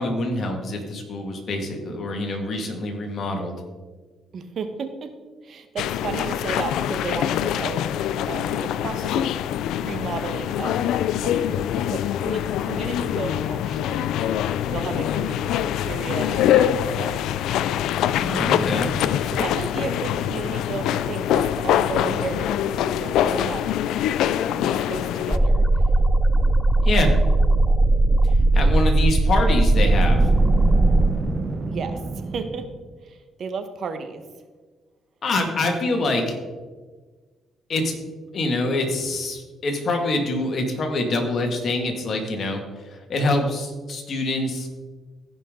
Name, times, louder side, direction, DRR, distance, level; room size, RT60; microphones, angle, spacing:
voice 1, 0.0-3.5 18.2-18.9 26.8-27.1 28.5-30.2 35.2-36.4 37.7-37.9 38.3-42.6 42.9-44.7, left 2 dB, 55° left, 2 dB, 2.0 m, -25 dB
voice 2, 4.3-5.1 5.4-7.8 8.3-9.3 9.7-10.9 11.2-14.3 14.7-17.3 19.3-22.6 22.9-23.7 24.5-25.7 31.7-32.0 32.3-32.7 33.0-34.3, right 5 dB, 60° right, 8 dB, 1.1 m, -33 dB
sound 1, 5.8-25.4, left 11 dB, 85° left, 0.3 m, -24 dB
sound 2, 25.3-31.1, right 2 dB, ahead, 0.4 m, -18 dB
Boom, 29.8-32.8, right 3 dB, 35° right, 0.9 m, -28 dB
15.5 x 5.4 x 3.8 m, 1.4 s
cardioid pair, 90°, 0 cm